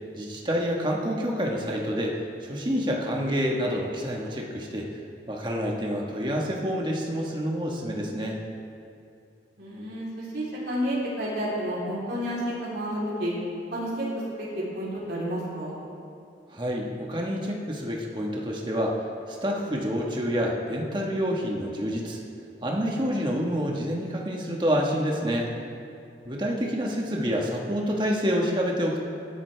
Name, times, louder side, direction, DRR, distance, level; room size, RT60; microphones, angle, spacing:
voice 1, 0.2-4.9 5.3-8.4 16.5-22.2 22.6-25.5 26.2-29.0, equal, 25° right, -1 dB, 1.4 m, -28 dB
voice 2, 9.6-13.3 13.7-14.1 14.4-15.8, equal, 70° right, -8 dB, 3.5 m, -30 dB
18.5 x 11.0 x 3.4 m, 2.5 s
head